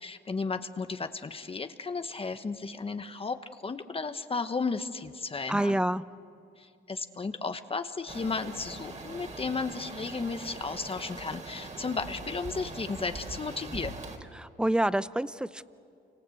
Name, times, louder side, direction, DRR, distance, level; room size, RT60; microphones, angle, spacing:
voice 1, 0.0-5.8 6.6-14.0, left 4 dB, 30° left, 9 dB, 1.2 m, -34 dB
voice 2, 5.5-6.0 14.4-15.6, right 1 dB, 5° right, 15 dB, 0.7 m, -27 dB
sound 1, 8.1-14.2, right 2 dB, 35° right, 3.6 m, -42 dB
29.0 x 25.0 x 7.9 m, 2.4 s
cardioid pair, 90°, 20 cm